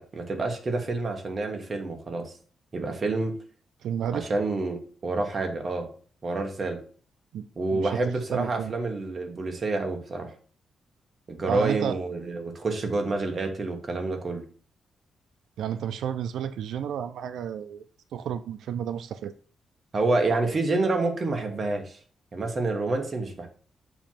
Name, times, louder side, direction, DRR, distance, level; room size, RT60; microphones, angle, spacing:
voice 1, 0.0-2.3 2.7-3.4 4.1-5.9 6.2-6.8 7.6-10.3 11.3-14.4 19.9-22.0 22.3-23.5, right 3 dB, 30° right, 1.2 m, -28 dB
voice 2, 3.8-4.3 7.3-8.0 8.3-8.7 11.5-12.0 15.6-17.8 18.1-19.3, right 8 dB, 85° right, 0.4 m, -31 dB
6.9 x 3.0 x 5.7 m
wide cardioid pair, 160°, 0 cm